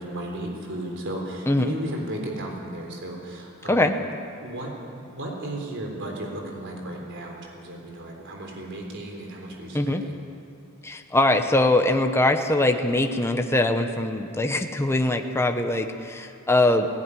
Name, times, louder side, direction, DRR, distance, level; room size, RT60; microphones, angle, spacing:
voice 1, 0.0-3.9 4.4-10.2, right 1 dB, 60° right, 1 dB, 3.7 m, -35 dB
voice 2, 10.8-16.9, left 2 dB, 10° left, 5 dB, 1.0 m, -22 dB
17.5 x 16.5 x 9.9 m, 2.8 s
head